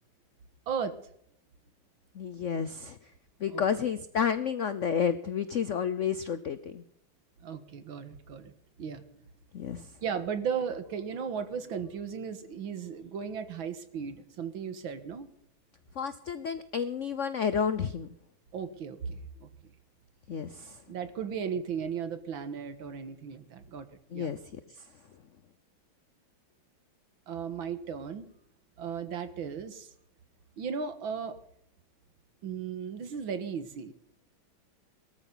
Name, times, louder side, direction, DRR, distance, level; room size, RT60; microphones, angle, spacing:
voice 1, 2.1-3.0 3.4-6.8 9.5-9.9 16.0-18.1 20.3-20.8 24.1-24.4, left 7 dB, 70° left, 13 dB, 0.7 m, -30 dB
voice 2, 7.4-8.5 8.8-9.0 10.0-15.3 18.5-19.5 20.9-23.9 24.1-24.3 27.3-28.3 28.8-29.9 30.6-31.4 32.4-33.9, right 7 dB, 75° right, 10 dB, 2.2 m, -36 dB
19.0 x 13.5 x 4.0 m, 0.69 s
omnidirectional pair, 2.3 m